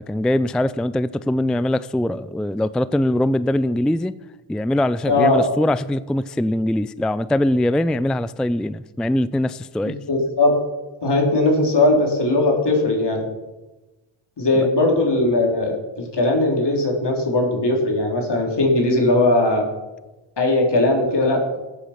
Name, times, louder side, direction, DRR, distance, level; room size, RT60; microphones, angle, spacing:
voice 1, 0.0-4.1 4.5-10.0, left 1 dB, ahead, 16 dB, 0.3 m, -22 dB
voice 2, 5.1-5.4 10.1-10.5 11.0-13.2 14.4-19.6 20.4-21.6, left 2 dB, 55° left, 0 dB, 3.7 m, -19 dB
14.0 x 8.4 x 5.9 m, 1.1 s
cardioid pair, 60°, 50 cm